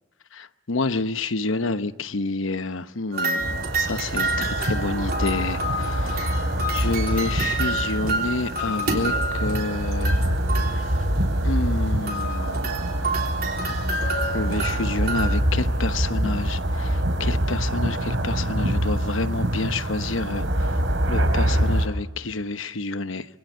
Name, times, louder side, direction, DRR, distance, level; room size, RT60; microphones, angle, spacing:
voice 1, 0.3-6.3 6.7-10.2 10.7-10.9 11.4-12.8 14.3-20.4 21.1-23.3, left 3 dB, 85° left, 1.0 m, -29 dB
sound 1, 3.1-11.4 12.1-15.4, right 2 dB, 50° right, 3.4 m, -29 dB
sound 2, 3.4-21.9, right 1 dB, 75° right, 3.3 m, -25 dB
25.5 x 23.5 x 8.1 m
head